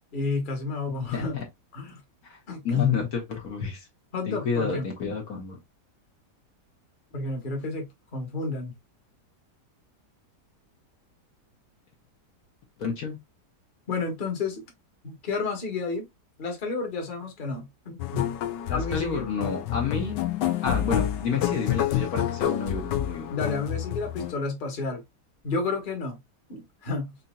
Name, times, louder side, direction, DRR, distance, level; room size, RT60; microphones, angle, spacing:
voice 1, 0.1-1.4 1.7-2.0 2.5-3.0 4.1-4.9 7.1-8.7 13.9-14.6 15.0-16.1 16.4-18.3 18.7-19.2 21.3-21.4 23.3-25.0 25.4-26.2 26.5-27.2, left 3 dB, 30° left, 1.2 m, -31 dB
voice 2, 0.9-1.4 2.2-2.4 2.6-3.9 4.3-5.6 12.8-13.2 18.7-20.1 20.6-23.4, left 5 dB, 65° left, 1.4 m, -30 dB
sound 1, 18.0-24.3, left 11 dB, 85° left, 1.2 m, -28 dB
5.0 x 2.7 x 2.2 m
omnidirectional pair, 1.8 m